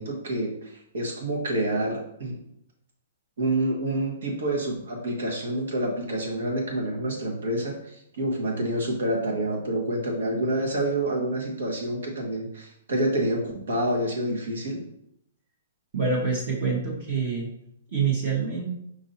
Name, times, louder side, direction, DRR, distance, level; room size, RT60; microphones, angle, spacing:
voice 1, 0.0-2.4 3.4-14.8, right 1 dB, 80° right, 0 dB, 1.4 m, -28 dB
voice 2, 15.9-17.5 17.9-18.7, right 5 dB, 35° right, -2 dB, 1.0 m, -26 dB
4.9 x 2.6 x 4.1 m, 0.74 s
hypercardioid pair, 170°, 0 cm